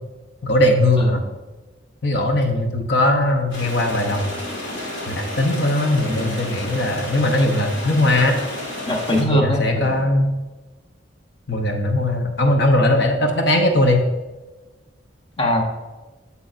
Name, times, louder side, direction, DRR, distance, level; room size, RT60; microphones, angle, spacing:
voice 1, 0.4-1.2 2.0-4.3 5.1-8.4 9.3-10.3 11.5-14.0, left 1 dB, 60° left, 3 dB, 0.8 m, -19 dB
sound 1, 3.5-9.2, left 1 dB, 85° left, 2.0 m, -31 dB
voice 2, 6.0-6.5 8.9-10.0 15.4-15.6, equal, 25° left, 0 dB, 0.9 m, -22 dB
8.2 x 7.0 x 2.5 m, 1.2 s
head